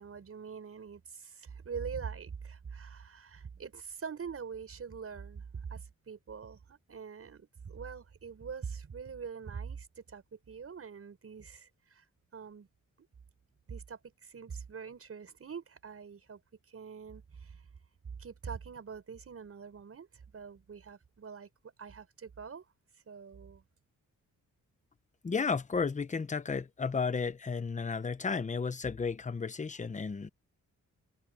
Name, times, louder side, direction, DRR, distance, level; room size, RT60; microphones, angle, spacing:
voice 1, 0.0-12.0 12.3-12.7 13.0-13.1 13.7-16.4 16.7-17.6 18.2-22.6 23.1-23.6, right 6 dB, 45° right, 6.5 m, -44 dB
voice 2, 25.2-30.3, left 5 dB, 25° left, 0.9 m, -33 dB
wide cardioid pair, 135°, 31 cm